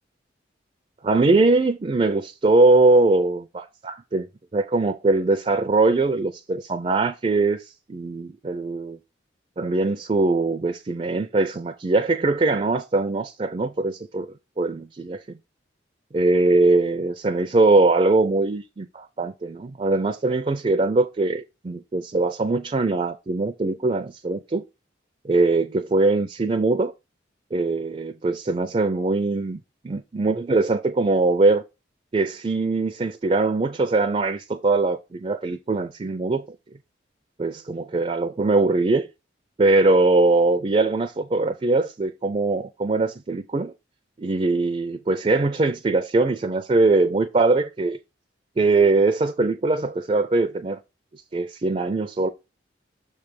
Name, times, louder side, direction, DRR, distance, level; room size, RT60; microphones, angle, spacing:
voice 1, 1.0-4.3 4.5-7.6 7.9-9.0 9.6-15.4 16.1-24.6 25.2-26.9 27.5-29.6 29.8-31.6 32.1-36.4 37.4-39.1 39.6-43.7 44.2-48.0 48.6-50.8 51.3-52.3, right 3 dB, 30° right, 0.4 m, -21 dB
6.4 x 3.2 x 5.1 m
head